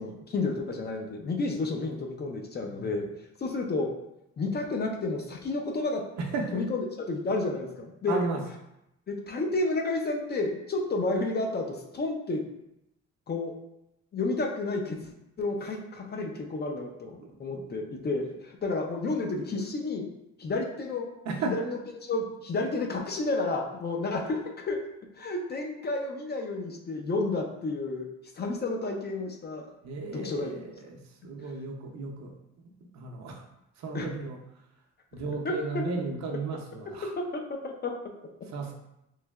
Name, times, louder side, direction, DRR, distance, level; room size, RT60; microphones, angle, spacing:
voice 1, 0.0-3.9 4.4-6.1 6.5-8.2 9.1-12.4 13.3-13.5 14.1-15.0 15.4-20.1 20.4-21.1 21.5-24.8 25.1-28.1 28.3-29.7 30.1-30.7 33.9-34.1 35.4-35.8 37.2-37.4 37.8-37.9, left 2 dB, 35° left, 2 dB, 0.4 m, -31 dB
voice 2, 6.2-6.6 8.0-8.4 17.2-17.7 21.3-21.6 29.8-33.4 33.8-34.4 35.1-37.1 38.5-38.7, right 4 dB, 65° right, 1 dB, 0.6 m, -35 dB
3.1 x 2.7 x 2.2 m, 0.86 s
cardioid pair, 90°, 30 cm